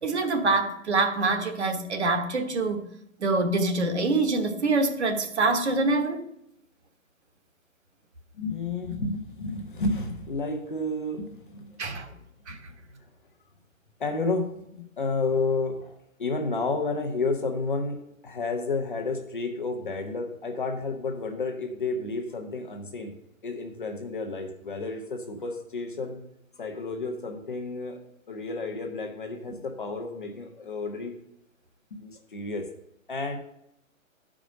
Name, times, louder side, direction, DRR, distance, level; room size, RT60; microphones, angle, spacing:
voice 1, 0.0-2.9 3.2-6.2 11.8-12.1 12.5-12.6, right 3 dB, 55° right, 1.3 m, -25 dB
voice 2, 8.3-11.8 12.1-12.2 14.0-23.1 23.4-26.2 26.6-28.0 28.3-31.2 31.9-32.7 33.1-33.4, left 3 dB, 40° left, 1.0 m, -31 dB
11.5 x 5.0 x 5.2 m
hypercardioid pair, 180°, 41 cm